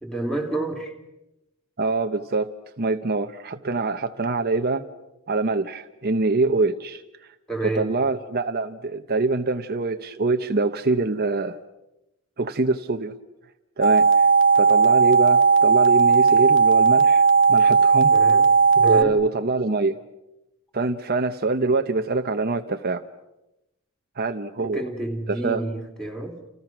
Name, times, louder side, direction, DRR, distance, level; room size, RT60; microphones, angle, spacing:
voice 1, 0.0-0.9 7.5-7.9 18.1-18.5 18.8-19.2 24.6-26.4, right 2 dB, 5° left, 3 dB, 3.2 m, -29 dB
voice 2, 1.8-2.5 2.8-4.8 5.3-7.0 7.6-11.6 12.4-13.1 13.8-14.3 14.6-18.1 18.8-20.0 20.7-23.0 24.2-24.8 25.3-25.6, right 3 dB, 45° right, 7 dB, 0.9 m, -24 dB
sound 1, 13.8-19.0, right 5 dB, 60° left, 1.8 m, -16 dB
30.0 x 29.5 x 6.1 m, 0.94 s
head